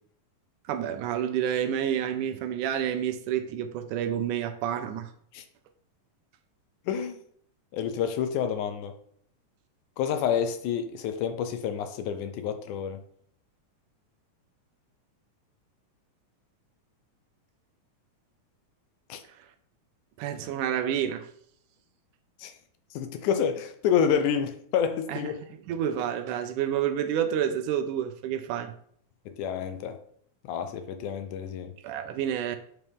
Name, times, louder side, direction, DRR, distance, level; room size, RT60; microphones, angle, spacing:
voice 1, 0.7-5.1 20.2-21.3 25.1-25.3 25.7-28.7 31.8-32.6, right 9 dB, 80° right, 2.0 m, -29 dB
voice 2, 6.9-7.2 7.7-8.9 10.0-13.0 19.1-19.2 22.4-22.5 22.9-25.4 29.3-30.0 30.4-31.7, left 8 dB, 80° left, 2.1 m, -28 dB
6.8 x 6.3 x 3.6 m
omnidirectional pair, 3.7 m